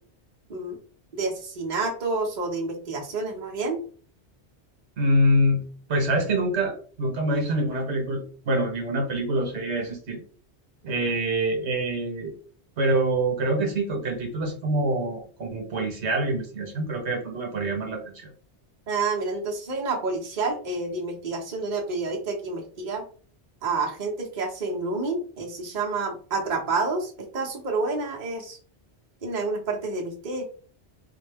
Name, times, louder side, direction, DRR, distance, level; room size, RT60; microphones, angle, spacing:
voice 1, 1.1-3.8 18.9-23.0 23.6-28.6 29.2-30.4, right 3 dB, 45° right, -1 dB, 1.0 m, -29 dB
voice 2, 5.0-5.6 5.9-10.2 10.8-12.3 12.8-18.3, right 1 dB, 80° right, 1 dB, 1.3 m, -25 dB
4.2 x 2.1 x 3.4 m, 0.42 s
omnidirectional pair, 1.1 m